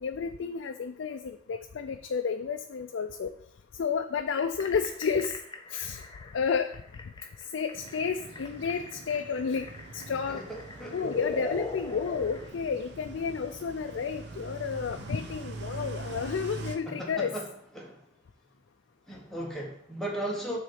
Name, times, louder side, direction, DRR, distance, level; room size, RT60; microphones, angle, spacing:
voice 1, 0.0-3.3 3.8-5.4 5.7-6.0 6.3-6.7 7.5-9.7 9.9-10.4 10.9-17.3, left 6 dB, 85° left, 6 dB, 0.4 m, -31 dB
sound 1, 4.3-12.5, left 3 dB, 25° left, 0.5 m, -40 dB
sound 2, 7.7-16.8, right 3 dB, 60° right, 0.8 m, -43 dB
voice 2, 10.3-11.1 16.9-17.5 17.7-18.0 19.1-20.6, right 1 dB, ahead, -3 dB, 1.3 m, -36 dB
6.2 x 3.8 x 5.7 m, 0.67 s
head